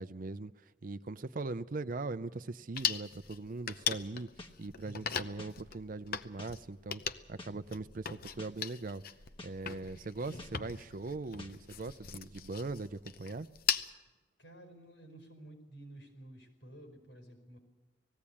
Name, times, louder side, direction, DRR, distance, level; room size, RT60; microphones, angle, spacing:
voice 1, 0.0-4.3 4.6-7.0 7.3-9.0 9.4-13.5, right 3 dB, 50° right, 0.6 m, -40 dB
sound 1, 2.8-13.9, left 8 dB, 55° left, 0.7 m, -39 dB
sound 2, 4.4-4.5 5.4-5.5 6.4-6.5 7.4-7.5 8.4-8.5 9.4-9.5 10.4-10.5 11.4-11.5, left 2 dB, 30° left, 1.3 m, -48 dB
voice 2, 4.8-5.5 10.2-10.8 14.4-17.6, right 1 dB, 85° left, 5.3 m, -52 dB
19.5 x 15.5 x 8.6 m
head